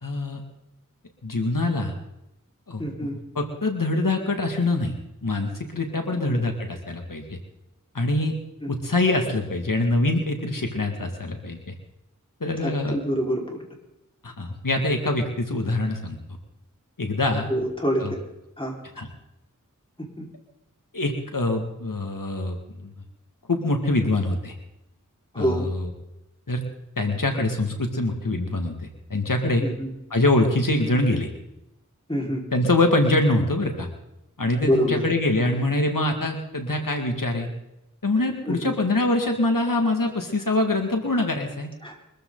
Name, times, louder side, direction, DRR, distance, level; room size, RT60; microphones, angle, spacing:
voice 1, 0.0-0.4 1.2-1.9 2.7-3.1 3.4-4.9 5.2-7.4 7.9-8.3 8.7-11.7 12.4-13.0 14.2-16.2 17.0-17.5 18.0-18.1 19.0-19.1 20.9-22.9 23.5-24.5 25.4-25.9 26.5-26.6 27.0-29.6 30.1-31.3 32.5-33.9 34.4-37.5 38.0-41.7, left 2 dB, 85° left, 4 dB, 2.2 m, -24 dB
voice 2, 2.8-3.2 6.1-6.4 8.6-8.7 12.6-13.6 17.5-18.2 18.6-18.7 20.2-20.3 25.3-25.7 29.6-29.9 32.1-32.4 34.6-35.1 38.5-38.7 41.8-41.9, equal, 15° left, -1 dB, 5.0 m, -26 dB
23.5 x 14.5 x 4.0 m, 0.90 s
wide cardioid pair, 45°, 32 cm